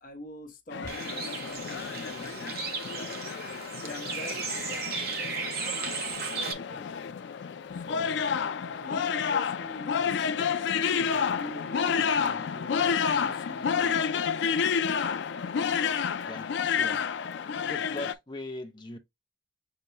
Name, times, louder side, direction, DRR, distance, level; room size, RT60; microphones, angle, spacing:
voice 1, 0.0-3.2 3.8-5.2 6.5-6.9 7.7-10.3 10.8-14.4, equal, 45° left, 1.0 m, -45 dB
sound 1, 0.7-18.1, left 6 dB, 65° left, 0.3 m, -30 dB
Bird, 0.9-6.5, right 5 dB, 50° right, 0.8 m, -35 dB
voice 2, 16.3-17.0 17.7-19.0, left 2 dB, 25° left, 0.6 m, -40 dB
6.6 x 2.2 x 2.8 m
head